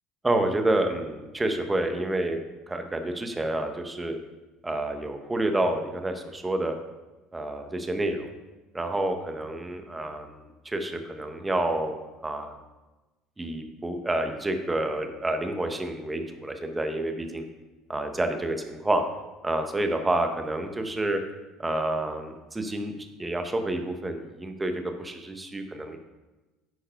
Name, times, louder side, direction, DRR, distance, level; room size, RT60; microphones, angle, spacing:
voice 1, 0.2-2.4 2.7-4.2 4.6-6.7 7.3-8.3 8.7-10.4 10.6-12.0 12.2-12.6 13.4-17.4 17.9-19.0 19.4-21.2 21.6-22.9 23.2-26.0, right 1 dB, 10° right, 5 dB, 0.8 m, -28 dB
10.0 x 4.5 x 5.6 m, 1.1 s
cardioid pair, 160°, 0 cm